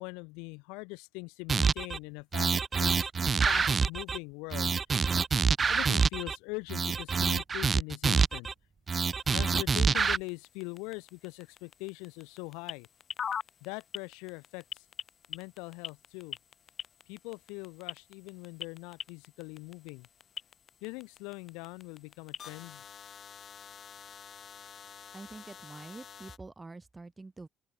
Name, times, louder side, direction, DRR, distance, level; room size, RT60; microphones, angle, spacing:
voice 1, 0.0-4.7 5.7-8.5 9.3-12.9 13.6-14.8 15.3-16.4 17.1-20.1 20.8-22.8, left 29 dB, 85° left, 2.5 m, -42 dB
sound 1, 1.5-2.0 2.3-4.2 4.5-6.4 6.7-8.5 8.9-10.2, right 5 dB, 40° right, 1.1 m, -26 dB
sound 2, 9.2-26.4, left 7 dB, 55° left, 2.4 m, -46 dB
voice 2, 25.1-27.5, right 3 dB, 25° right, 4.1 m, -46 dB
open air
hypercardioid pair, 55°, 0 cm